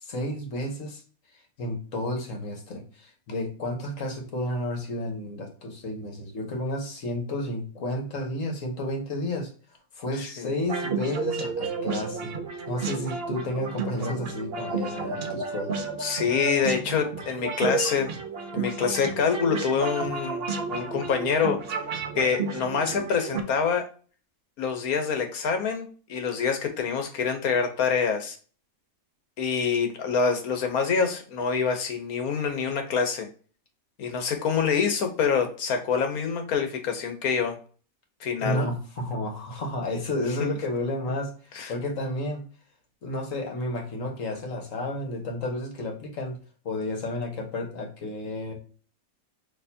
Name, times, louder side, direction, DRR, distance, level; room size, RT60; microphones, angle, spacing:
voice 1, 0.0-1.0 1.6-9.5 9.9-12.4 12.7-15.8 38.4-42.4 43.0-46.4 46.6-48.5, left 1 dB, 65° left, 3 dB, 1.6 m, -31 dB
voice 2, 10.2-10.5 16.0-18.1 18.5-21.6 22.1-23.8 24.6-28.4 29.4-33.3 34.0-37.6 38.2-38.6 41.5-41.7, left 6 dB, 85° left, 5 dB, 1.5 m, -26 dB
sound 1, 10.6-23.4, right 4 dB, 50° right, 0.8 m, -32 dB
6.4 x 3.1 x 2.6 m, 0.40 s
omnidirectional pair, 1.5 m